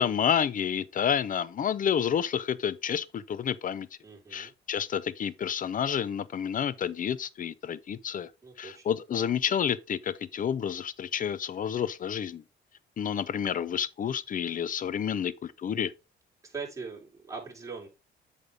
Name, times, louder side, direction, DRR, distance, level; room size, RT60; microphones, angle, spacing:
voice 1, 0.0-3.9 4.3-8.3 8.6-12.4 13.0-15.9, left 8 dB, 45° left, 0.5 m, -29 dB
voice 2, 4.0-4.5 8.4-8.8 16.4-17.9, right 5 dB, 15° right, 3.6 m, -41 dB
8.1 x 5.2 x 3.4 m
cardioid pair, 90°, 20 cm